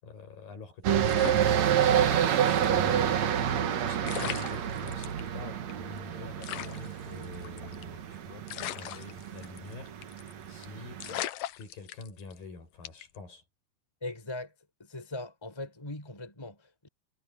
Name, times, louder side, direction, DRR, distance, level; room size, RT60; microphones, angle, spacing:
voice 1, 0.0-3.2 3.8-9.9 10.5-11.1 11.6-13.4, left 4 dB, 55° left, 7.9 m, -46 dB
sound 1, 0.8-11.2, right 9 dB, 55° right, 2.0 m, -28 dB
sound 2, 1.0-2.2 2.6-2.7 3.7-3.8 4.0-5.2 5.7-5.8 6.0-6.1 6.4-8.0 8.5-9.7 10.0-10.3 10.6-10.7 11.0-12.4 12.8-13.2, left 14 dB, 75° left, 2.0 m, -38 dB
voice 2, 14.0-14.5 14.8-16.9, left 2 dB, 5° left, 4.1 m, -40 dB
omnidirectional pair, 4.9 m